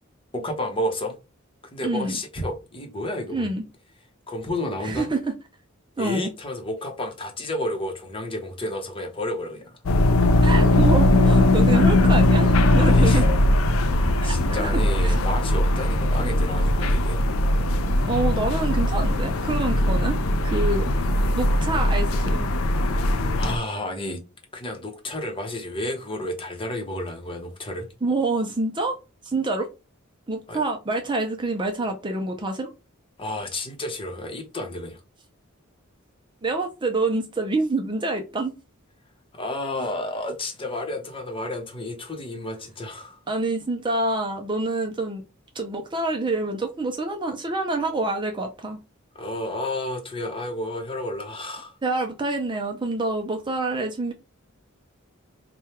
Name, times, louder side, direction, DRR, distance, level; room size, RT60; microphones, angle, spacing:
voice 1, 0.3-1.2 1.7-3.5 4.3-5.1 6.0-9.7 12.8-13.2 13.9-17.2 22.8-24.2 24.5-27.9 30.5-30.6 33.2-35.0 39.3-43.2 49.1-51.7, left 1 dB, 25° left, 0.9 m, -31 dB
voice 2, 1.8-2.1 3.3-3.6 4.8-5.3 6.0-6.3 10.4-13.3 14.2-15.2 18.1-20.2 20.4-20.9 21.3-22.5 28.0-29.0 29.3-29.7 30.3-32.7 36.4-38.5 43.3-45.2 45.5-48.8 51.8-54.1, right 2 dB, 25° right, 0.5 m, -27 dB
sound 1, 9.9-23.6, left 1 dB, 80° left, 0.5 m, -20 dB
3.4 x 2.3 x 4.3 m
head